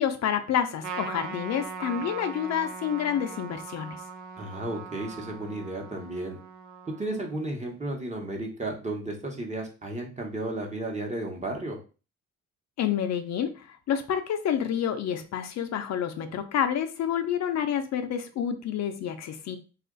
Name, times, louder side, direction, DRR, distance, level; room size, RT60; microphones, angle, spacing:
voice 1, 0.0-4.0 12.8-19.6, left 9 dB, 60° left, 7 dB, 0.5 m, -28 dB
Trumpet, 0.8-7.5, right 5 dB, 80° right, 0.6 m, -40 dB
voice 2, 4.4-6.4 6.9-11.8, right 1 dB, 25° right, 1 dB, 1.0 m, -33 dB
2.9 x 2.4 x 3.8 m, 0.34 s
cardioid pair, 90°, 30 cm